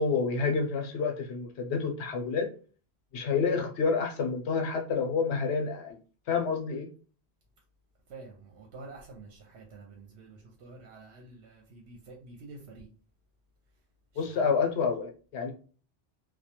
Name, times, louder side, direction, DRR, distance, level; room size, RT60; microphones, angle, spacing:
voice 1, 0.0-2.5 3.1-6.0 6.3-6.9 14.2-15.5, left 5 dB, 80° left, 0.8 m, -28 dB
voice 2, 8.1-12.9 14.1-14.5, right 3 dB, 80° right, 0.9 m, -48 dB
2.2 x 2.2 x 2.8 m
omnidirectional pair, 1.1 m